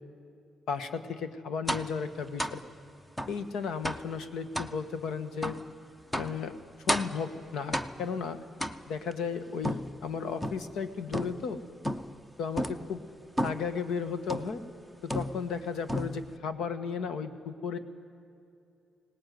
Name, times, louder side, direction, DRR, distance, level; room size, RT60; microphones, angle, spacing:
voice 1, 0.7-2.6 3.3-5.6 6.1-6.6 6.8-8.4 8.9-11.6 12.4-13.0 13.4-14.6 15.0-17.8, left 6 dB, 80° left, 10 dB, 1.5 m, -34 dB
sound 1, 1.7-2.0 2.4-2.6 3.2-3.4 3.8-4.1 4.5-4.8 5.4-5.6 6.1-6.4 6.9-7.2 7.7-8.1 8.6-9.1 9.6-10.7 11.1-11.5 11.8-12.2 12.6-12.9 13.4-13.7 14.3-14.6 15.1-15.6 15.9-16.4, equal, 5° left, 0.7 m, -33 dB
23.0 x 18.5 x 9.4 m, 2.6 s
wide cardioid pair, 180°, 0 cm